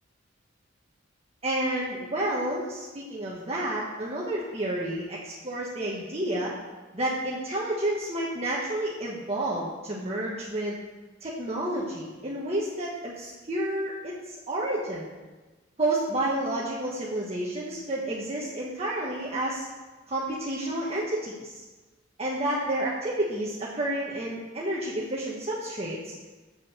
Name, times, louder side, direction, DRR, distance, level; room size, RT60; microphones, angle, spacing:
voice 1, 1.4-6.5 6.9-10.8 11.2-15.1 15.8-19.7 20.1-21.6 22.2-26.1, right 1 dB, 30° right, -4 dB, 1.3 m, -30 dB
8.5 x 7.5 x 6.8 m, 1.2 s
head